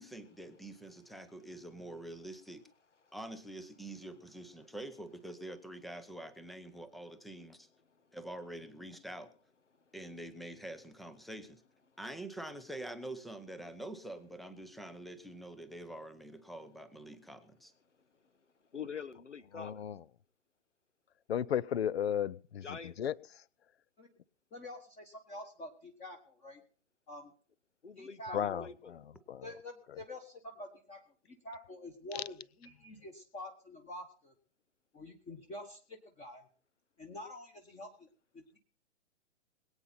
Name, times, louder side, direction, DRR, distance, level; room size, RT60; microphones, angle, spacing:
voice 1, 0.0-2.6 3.1-7.7 8.1-9.3 9.9-11.6 12.0-17.7, right 1 dB, ahead, 0.5 m, -46 dB
voice 2, 18.7-19.8 22.6-23.1 27.8-29.0, left 6 dB, 80° left, 1.1 m, -45 dB
voice 3, 19.6-20.0 21.3-22.6 23.0-23.1 28.3-28.7 29.3-29.4, left 9 dB, 60° left, 0.7 m, -33 dB
voice 4, 24.5-26.6 27.1-27.3 27.9-28.7 29.4-31.0 31.3-34.3 34.9-36.5 37.0-37.9 38.3-38.4, left 1 dB, 15° left, 1.4 m, -47 dB
21.5 x 8.8 x 4.3 m
figure-of-eight pair, 120°, 35 cm